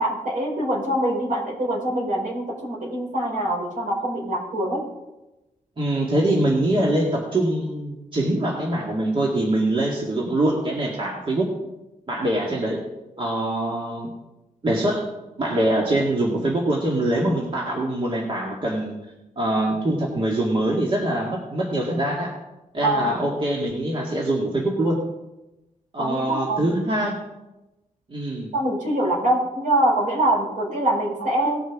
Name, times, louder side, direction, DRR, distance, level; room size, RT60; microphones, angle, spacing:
voice 1, 0.0-4.8 22.8-23.2 26.0-26.7 28.5-31.6, right 1 dB, 70° right, -2 dB, 4.8 m, -24 dB
voice 2, 5.8-11.5 12.1-12.8 13.2-14.1 14.6-15.1 15.4-18.9 19.4-22.3 22.7-25.0 25.9-27.2 28.1-28.5, right 1 dB, 40° right, -2 dB, 2.2 m, -23 dB
18.5 x 6.4 x 4.8 m, 0.99 s
cardioid pair, 95°, 14 cm